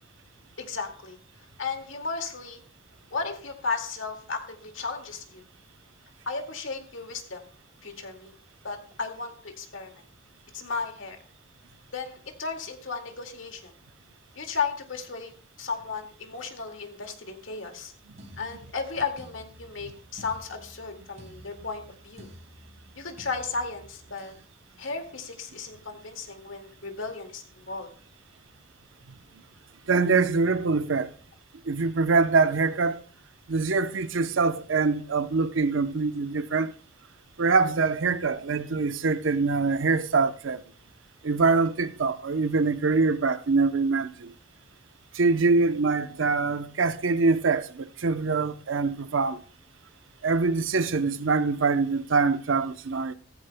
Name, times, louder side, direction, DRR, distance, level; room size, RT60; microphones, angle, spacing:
voice 1, 0.6-1.2 1.6-2.6 3.1-5.4 6.3-7.4 7.8-8.3 8.6-10.0 10.5-11.2 11.9-13.7 14.4-15.3 15.6-17.9 18.4-22.3 23.0-24.3 24.8-27.9, left 4 dB, 80° left, 2.1 m, -34 dB
sound 1, 18.2-24.5 25.2-25.5, equal, 35° right, 4.0 m, -51 dB
voice 2, 29.9-31.1 31.7-33.0 33.5-36.7 37.4-40.6 41.2-44.3 45.1-49.4 50.2-53.1, right 4 dB, 80° right, 0.7 m, -24 dB
15.0 x 14.5 x 2.2 m
head